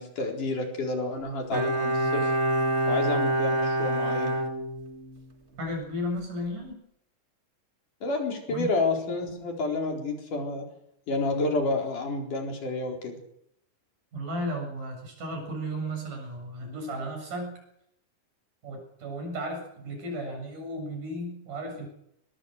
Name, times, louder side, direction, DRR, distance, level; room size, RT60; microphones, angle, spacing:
voice 1, 0.0-2.4 2.9-4.4 8.0-10.6 11.1-13.2, left 3 dB, 75° left, 2 dB, 5.9 m, -29 dB
Bowed string instrument, 1.5-5.3 5.6-5.7, right 1 dB, 30° right, 1.5 m, -26 dB
voice 2, 5.6-6.8 8.5-8.8 14.1-17.5 18.6-21.9, equal, 80° right, 2 dB, 9.1 m, -34 dB
23.5 x 20.5 x 6.6 m, 0.76 s
omnidirectional pair, 3.6 m